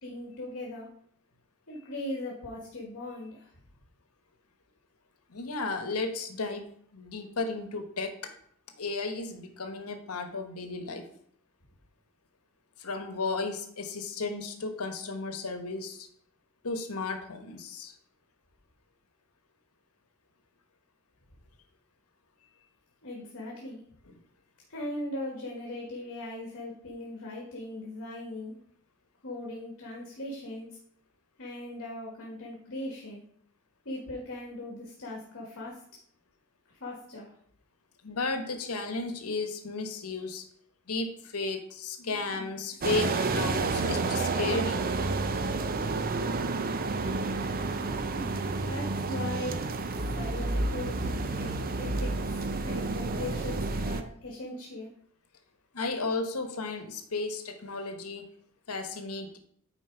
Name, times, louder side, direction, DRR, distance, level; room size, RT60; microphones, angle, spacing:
voice 1, 0.0-0.9 1.7-3.5 23.0-23.8 24.7-28.5 29.2-30.7 31.4-33.2 33.8-35.8 36.8-37.3 48.1-49.6 50.2-54.9, left 1 dB, 60° left, -2 dB, 1.6 m, -39 dB
voice 2, 5.3-6.7 6.9-8.3 8.8-11.0 12.8-16.1 16.6-17.9 38.0-40.4 40.9-44.8 51.3-51.5 55.7-58.3 58.7-59.4, left 3 dB, 90° left, 7 dB, 1.1 m, -34 dB
sound 1, 42.8-54.0, right 3 dB, 45° right, 0.6 m, -30 dB
9.3 x 4.5 x 4.5 m, 0.66 s
head